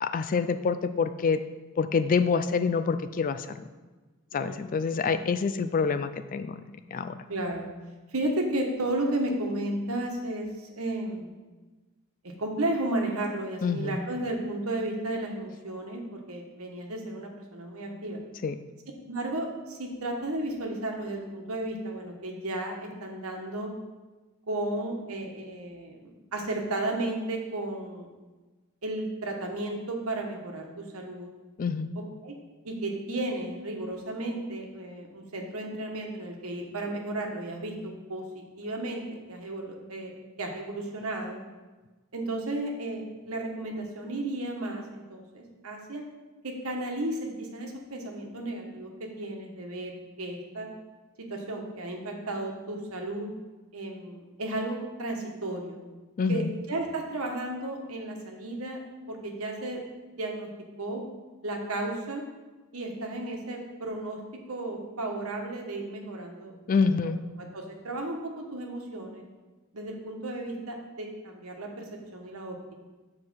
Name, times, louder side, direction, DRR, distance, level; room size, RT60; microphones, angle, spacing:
voice 1, 0.0-1.4 1.8-3.6 4.3-6.6 6.9-7.2 13.6-14.0 18.4-18.6 31.6-31.9 56.2-56.5 66.7-67.2, left 5 dB, 40° left, 11 dB, 0.3 m, -26 dB
voice 2, 4.3-4.6 5.0-5.2 7.3-7.7 8.1-11.3 12.2-18.2 19.1-23.7 24.5-28.1 28.8-31.3 32.2-32.4 32.6-40.1 40.4-41.4 42.1-46.0 46.4-50.7 51.2-53.3 53.7-55.8 56.3-58.8 59.1-59.8 60.2-60.5 60.8-61.0 61.4-62.2 62.7-64.2 64.5-66.5 67.0-67.1 67.4-69.2 69.7-72.6, right 1 dB, 90° right, 2 dB, 1.3 m, -33 dB
7.4 x 4.7 x 6.2 m, 1.2 s
head